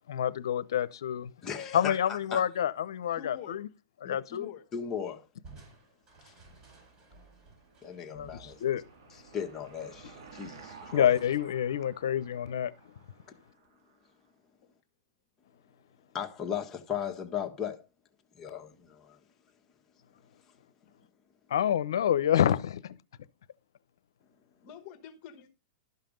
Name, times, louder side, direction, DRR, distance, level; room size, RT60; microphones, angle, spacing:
voice 1, 0.1-1.3 1.7-3.7 4.0-4.5 8.1-8.8 10.9-12.7 21.5-22.8, left 10 dB, 80° left, 0.7 m, -28 dB
voice 2, 1.4-2.4 4.7-5.2 6.2-6.3 7.8-8.6 9.1-11.2 16.1-17.8 18.3-19.2, left 8 dB, 20° left, 1.5 m, -37 dB
voice 3, 3.1-3.6 4.0-4.6 24.6-25.5, left 9 dB, 40° left, 1.5 m, -46 dB
Crushing, 5.4-10.8, right 4 dB, 30° right, 4.8 m, -56 dB
Car passing by / Engine, 7.3-14.1, right 5 dB, 65° right, 2.2 m, -53 dB
12.0 x 5.8 x 5.2 m
hypercardioid pair, 140°, 2 cm